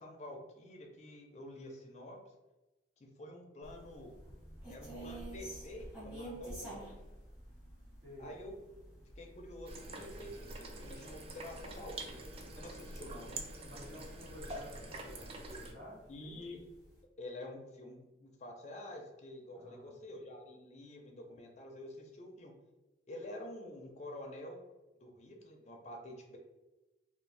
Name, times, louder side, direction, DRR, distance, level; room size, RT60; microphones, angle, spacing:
voice 1, 0.0-2.2 3.0-4.2 4.7-7.0 8.2-8.5 9.2-12.2 12.5-13.4 16.1-16.6 17.2-22.5 23.1-24.6 25.0-26.4, left 1 dB, 40° left, 2 dB, 0.4 m, -48 dB
sound 1, 3.6-14.0 14.4-14.5 15.0-15.7 16.1-16.2 16.6-17.0, right 1 dB, 5° right, 0.8 m, -50 dB
sound 2, 9.7-15.7, right 2 dB, 35° right, 0.3 m, -46 dB
sound 3, 10.9-14.9, left 2 dB, 80° right, 1.0 m, -62 dB
voice 2, 13.6-16.4 19.5-19.9, left 1 dB, 65° right, -6 dB, 1.3 m, -52 dB
2.5 x 2.0 x 3.2 m, 1.1 s
head